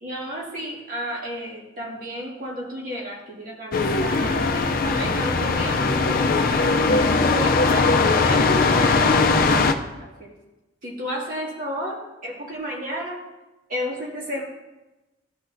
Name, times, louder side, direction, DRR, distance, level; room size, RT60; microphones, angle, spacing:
voice 1, 0.0-10.3 10.8-13.2 13.7-14.4, equal, 45° right, -3 dB, 2.0 m, -33 dB
sound 1, 3.7-9.7, left 3 dB, 50° left, 0.5 m, -20 dB
13.0 x 6.0 x 2.7 m, 1.0 s
head